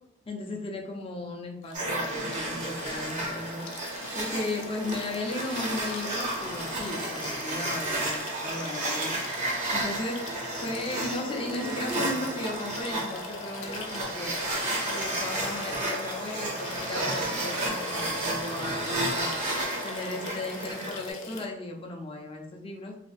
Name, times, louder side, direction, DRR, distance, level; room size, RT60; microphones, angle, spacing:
voice 1, 0.3-3.7 4.1-9.2 9.7-10.2 10.6-14.4 14.9-19.5 19.8-23.0, left 2 dB, 30° left, 1 dB, 0.5 m, -36 dB
sound 1, 1.6-21.5, left 3 dB, 80° left, 0.5 m, -42 dB
sound 2, 1.7-21.1, right 1 dB, 35° right, 0.6 m, -32 dB
3.3 x 2.3 x 2.5 m, 0.80 s
head